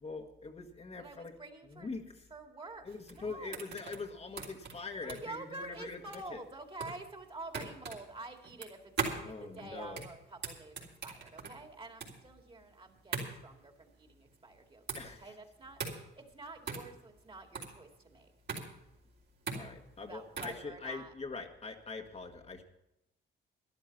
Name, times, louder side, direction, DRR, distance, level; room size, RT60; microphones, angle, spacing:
voice 1, 0.0-1.3 1.6-2.0 2.8-6.4 9.2-10.0 14.9-15.4 19.5-22.6, left 4 dB, 35° left, 3 dB, 1.5 m, -43 dB
voice 2, 1.0-1.9 2.3-3.7 5.0-8.9 9.2-10.8 11.0-18.3 20.0-21.1, right 2 dB, 25° right, 4 dB, 2.3 m, -48 dB
sound 1, 2.9-20.6, right 5 dB, 60° right, 3.5 m, -42 dB
13.0 x 11.5 x 5.8 m, 0.89 s
cardioid pair, 90°, 20 cm